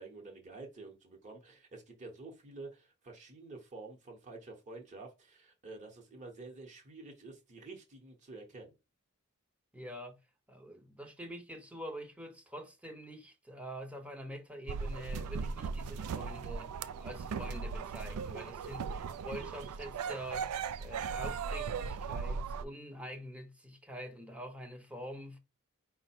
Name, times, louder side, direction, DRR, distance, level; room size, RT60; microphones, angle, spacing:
voice 1, 0.0-8.7, right 3 dB, 35° right, 0.9 m, -49 dB
voice 2, 9.7-10.2 10.5-20.5 20.8-25.4, equal, 5° right, 0.7 m, -46 dB
sound 1, 14.7-22.6, right 5 dB, 80° right, 0.4 m, -38 dB
4.8 x 2.1 x 4.2 m
head